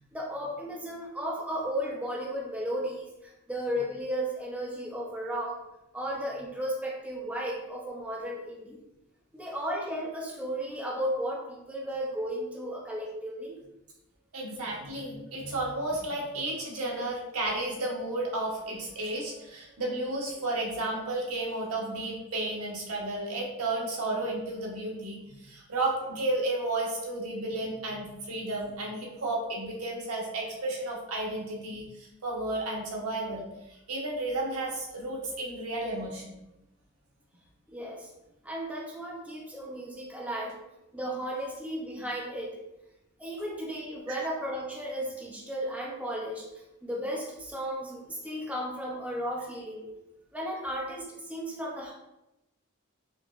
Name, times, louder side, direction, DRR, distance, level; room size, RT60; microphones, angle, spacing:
voice 1, 0.1-5.6 5.9-8.8 9.3-13.6 37.7-38.1 38.4-40.6 40.9-42.6 43.2-49.9 50.3-51.9, equal, 5° right, -3 dB, 0.5 m, -34 dB
voice 2, 14.3-36.4 44.1-44.2, right 2 dB, 85° right, -1 dB, 0.9 m, -33 dB
4.3 x 2.9 x 2.4 m, 0.93 s
head